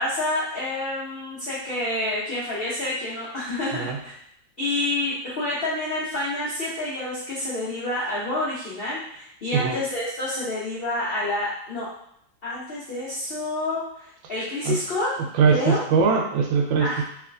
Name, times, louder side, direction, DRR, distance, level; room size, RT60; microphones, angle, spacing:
voice 1, 0.0-4.1 4.6-11.9 12.4-15.2 15.5-15.8 16.8-17.0, left 1 dB, 70° left, -8 dB, 0.5 m, -28 dB
voice 2, 15.3-17.0, right 5 dB, 85° right, 1 dB, 1.4 m, -21 dB
3.5 x 3.0 x 2.4 m, 0.72 s
omnidirectional pair, 2.1 m